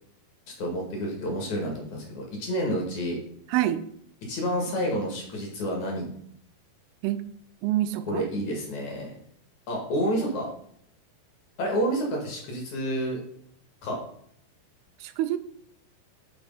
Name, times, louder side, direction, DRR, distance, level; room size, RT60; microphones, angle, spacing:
voice 1, 0.6-3.2 4.2-6.1 8.1-9.1 9.7-10.5 11.6-13.2 13.8-14.0, equal, 55° left, 0 dB, 2.6 m, -29 dB
voice 2, 3.5-3.8 7.0-7.2 7.6-8.3 15.0-15.4, right 13 dB, 85° right, 11 dB, 2.5 m, -26 dB
6.2 x 6.1 x 5.3 m, 0.68 s
omnidirectional pair, 4.6 m